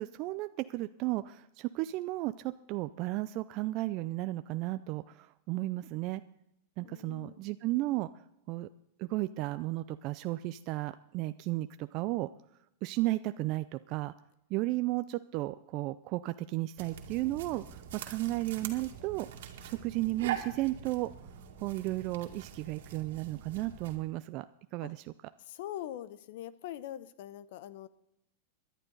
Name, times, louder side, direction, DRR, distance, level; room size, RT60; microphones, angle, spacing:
voice 1, 0.0-6.2 6.8-8.1 8.5-8.7 9.0-12.3 12.8-14.1 14.5-19.3 19.6-21.1 21.6-24.5 24.7-25.0, right 18 dB, 40° right, 11 dB, 0.4 m, -34 dB
voice 2, 6.8-7.4 24.8-24.9 25.4-27.9, left 12 dB, 60° left, 16 dB, 0.8 m, -43 dB
sound 1, 16.8-24.0, right 9 dB, 75° right, 2.0 m, -43 dB
19.0 x 11.5 x 4.0 m, 0.79 s
supercardioid pair, 145°, 0 cm